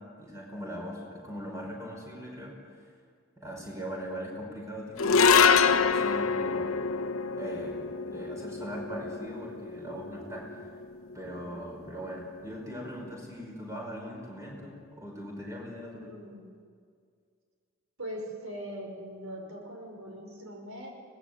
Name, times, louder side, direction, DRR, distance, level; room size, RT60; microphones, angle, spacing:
voice 1, 0.0-2.6 3.4-5.5 5.8-6.8 7.3-10.7 11.1-16.1, equal, 15° right, -1 dB, 5.0 m, -40 dB
sound 1, 5.0-11.5, left 5 dB, 75° left, 0.9 m, -26 dB
voice 2, 15.9-16.5 18.0-20.9, equal, 80° right, 2 dB, 5.4 m, -41 dB
23.5 x 19.5 x 8.2 m, 2.1 s
head